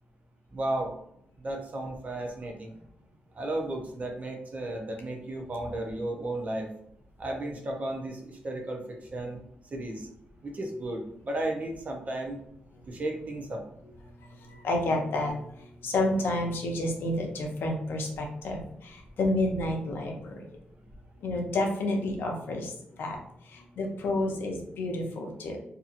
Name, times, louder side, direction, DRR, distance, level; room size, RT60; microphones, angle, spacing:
voice 1, 0.5-0.9 1.4-2.7 3.4-6.7 7.2-8.8 9.1-9.4 9.7-10.1 10.4-12.4 12.9-13.6, right 1 dB, 40° right, 2 dB, 0.6 m, -34 dB
voice 2, 14.6-15.3 15.8-20.4 21.2-22.7 23.0-23.2 23.8-25.6, left 1 dB, 80° left, 2 dB, 0.6 m, -29 dB
2.7 x 2.7 x 2.5 m, 0.73 s
cardioid pair, 90°, 4 cm